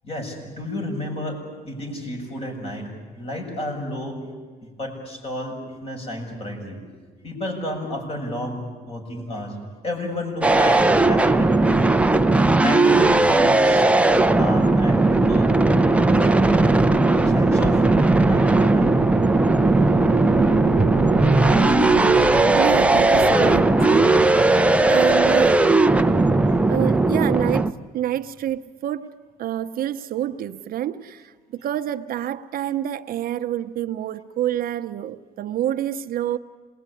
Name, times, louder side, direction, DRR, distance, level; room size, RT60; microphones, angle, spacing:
voice 1, 0.0-4.2 4.8-6.8 7.2-9.6 9.8-11.9 12.6-15.5 16.1-16.6 17.2-17.8 18.2-19.0 22.5-22.6, left 1 dB, 35° left, 7.1 m, -31 dB
sound 1, 10.4-27.7, right 2 dB, 5° right, 0.7 m, -17 dB
sound 2, 15.7-23.4, right 12 dB, 90° right, 1.0 m, -31 dB
voice 2, 22.5-24.3 24.9-25.6 26.7-29.1 29.4-36.4, right 11 dB, 60° right, 0.8 m, -27 dB
sound 3, 23.2-26.0, left 4 dB, 75° left, 2.2 m, -35 dB
27.0 x 20.5 x 9.9 m
cardioid pair, 110°, 17 cm